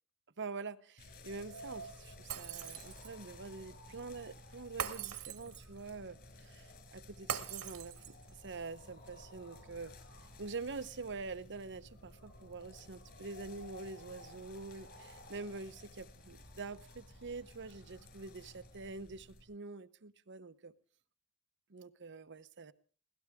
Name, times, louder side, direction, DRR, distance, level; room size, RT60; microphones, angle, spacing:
voice 1, 0.4-10.0 10.4-20.7 21.7-22.7, right 4 dB, 55° right, 0.9 m, -46 dB
sound 1, 1.0-19.4, left 1 dB, 45° left, 5.9 m, -54 dB
Shatter, 2.3-3.2 4.8-5.8 7.3-8.3, right 8 dB, 80° right, 1.9 m, -41 dB
23.0 x 17.5 x 3.6 m
head